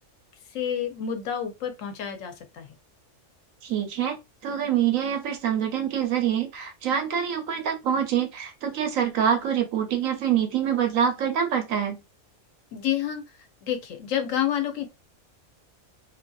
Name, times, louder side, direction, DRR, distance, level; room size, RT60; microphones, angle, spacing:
voice 1, 0.5-2.7 12.7-13.2 13.6-14.9, left 9 dB, 85° left, 1.0 m, -29 dB
voice 2, 3.6-4.2 4.4-12.0, right 8 dB, 90° right, 1.1 m, -25 dB
2.8 x 2.6 x 2.3 m
omnidirectional pair, 1.3 m